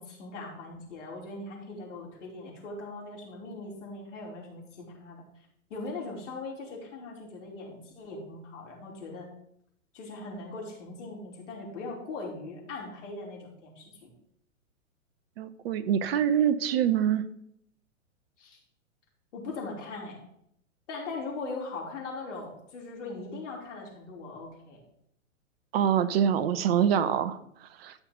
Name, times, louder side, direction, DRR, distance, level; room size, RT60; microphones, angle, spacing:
voice 1, 0.0-5.2 5.7-9.3 9.9-14.1 18.4-18.6 19.3-20.2 20.9-24.8, left 3 dB, 60° left, -2 dB, 5.0 m, -40 dB
voice 2, 15.4-17.2 25.7-27.4 27.8-27.9, right 9 dB, 45° right, 14 dB, 1.1 m, -25 dB
14.0 x 6.0 x 5.4 m, 0.72 s
figure-of-eight pair, 115°, 40 cm